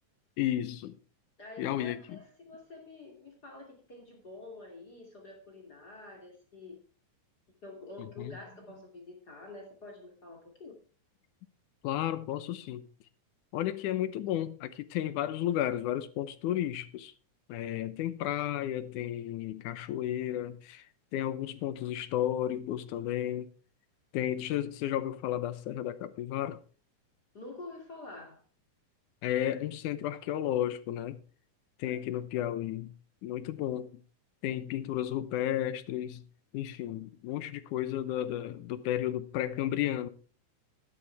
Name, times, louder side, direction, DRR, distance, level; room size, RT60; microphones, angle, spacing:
voice 1, 0.4-1.0 1.6-2.2 8.0-8.4 11.8-12.9 13.5-17.1 17.5-20.9 21.1-23.5 24.1-26.6 29.2-31.2 31.8-32.9 33.2-34.0 34.4-36.2 36.5-40.1, left 12 dB, 75° left, 2.2 m, -33 dB
voice 2, 1.4-6.8 7.6-10.7 27.3-28.4 31.8-32.0 32.4-32.5, left 2 dB, 30° left, 2.8 m, -48 dB
12.5 x 11.5 x 3.4 m
omnidirectional pair, 3.7 m